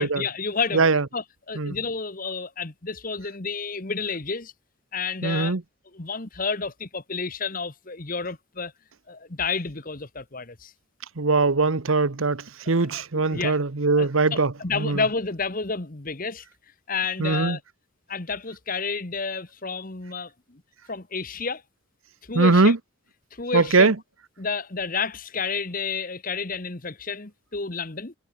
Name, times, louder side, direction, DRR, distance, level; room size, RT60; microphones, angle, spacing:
voice 1, 0.0-0.9 1.1-4.5 4.9-5.6 5.9-8.7 9.1-10.7 12.6-13.0 13.3-13.6 14.0-16.4 16.9-17.6 18.1-20.6 20.9-21.6 22.3-22.7 23.3-23.9 24.4-28.1, left 4 dB, 40° left, 1.3 m, -30 dB
voice 2, 0.7-1.0 1.6-1.8 5.2-5.6 11.2-15.0 17.2-17.6 22.3-22.8 23.5-23.9, right 3 dB, 70° right, 1.0 m, -21 dB
head